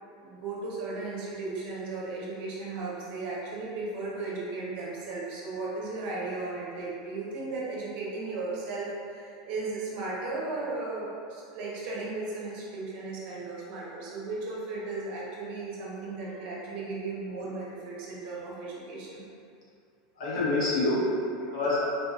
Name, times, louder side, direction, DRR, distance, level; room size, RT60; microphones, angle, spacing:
voice 1, 0.2-19.2, right 3 dB, 45° right, -5 dB, 0.7 m, -36 dB
voice 2, 20.1-21.9, left 2 dB, 85° left, -8 dB, 1.0 m, -27 dB
3.7 x 2.6 x 2.4 m, 2.5 s
supercardioid pair, 165°, 3 cm